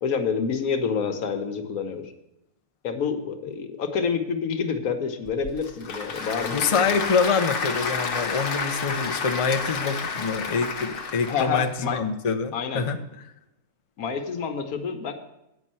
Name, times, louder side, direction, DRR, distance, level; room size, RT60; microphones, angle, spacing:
voice 1, 0.0-2.1 2.8-6.9 11.3-12.0 12.5-12.8 14.0-15.1, left 6 dB, 80° left, 6 dB, 1.4 m, -28 dB
Applause / Crowd, 5.3-11.7, left 5 dB, 60° left, 1.3 m, -30 dB
voice 2, 6.5-13.0, left 5 dB, 40° left, 7 dB, 0.4 m, -25 dB
9.0 x 5.5 x 7.5 m, 0.87 s
omnidirectional pair, 1.5 m